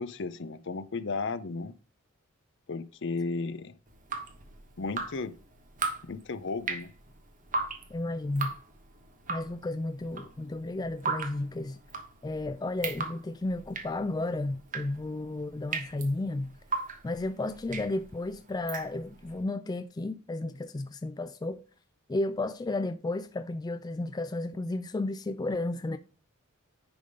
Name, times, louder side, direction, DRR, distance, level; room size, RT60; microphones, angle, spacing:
voice 1, 0.0-1.7 2.7-3.8 4.8-5.4 6.0-6.9, left 4 dB, 55° left, 0.6 m, -34 dB
Drip, 3.9-19.3, right 4 dB, 40° right, 1.2 m, -38 dB
voice 2, 7.9-8.5 9.3-11.8 12.2-16.5 17.0-21.7 22.1-26.0, left 2 dB, 20° left, 0.3 m, -33 dB
10.0 x 3.5 x 5.2 m
head